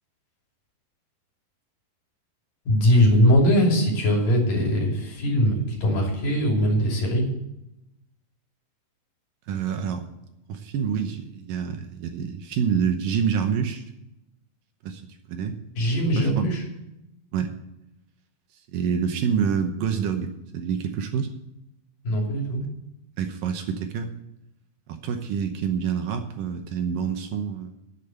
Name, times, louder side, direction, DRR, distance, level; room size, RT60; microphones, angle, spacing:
voice 1, 2.7-7.2 15.8-16.6 22.0-22.6, equal, 65° left, -1 dB, 4.7 m, -21 dB
voice 2, 9.5-10.0 10.5-13.8 14.8-15.0 15.3-15.6 16.2-16.5 17.3-17.5 18.7-21.3 23.2-24.1 24.9-27.8, right 7 dB, 70° right, 6 dB, 2.4 m, -27 dB
10.5 x 8.7 x 7.8 m, 0.87 s
omnidirectional pair, 4.4 m